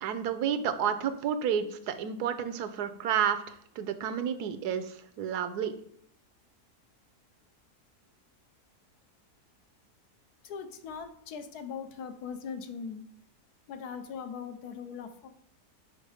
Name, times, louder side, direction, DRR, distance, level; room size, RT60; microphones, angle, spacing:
voice 1, 0.0-5.7, right 8 dB, 85° right, 10 dB, 1.2 m, -31 dB
voice 2, 10.4-13.0 13.7-15.3, left 6 dB, 85° left, 8 dB, 1.3 m, -40 dB
5.2 x 5.1 x 5.0 m, 0.67 s
omnidirectional pair, 1.6 m